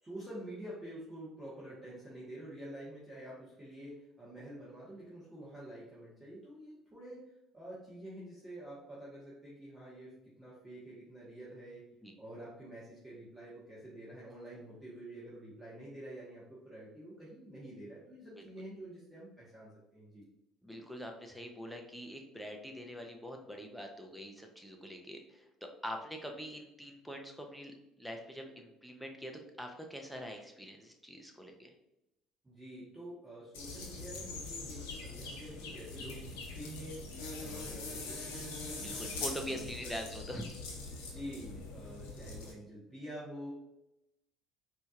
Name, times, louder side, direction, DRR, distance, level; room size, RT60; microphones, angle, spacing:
voice 1, 0.0-7.2 7.5-11.8 12.2-20.2 32.4-37.0 37.4-39.1 39.4-39.9 41.0-43.5, right 1 dB, 20° right, -8 dB, 1.3 m, -48 dB
voice 2, 20.6-31.7 38.8-40.4, equal, ahead, 3 dB, 0.7 m, -44 dB
sound 1, 33.5-42.5, left 3 dB, 85° left, 0.8 m, -43 dB
4.1 x 2.9 x 2.4 m, 0.89 s
supercardioid pair, 80°, 0 cm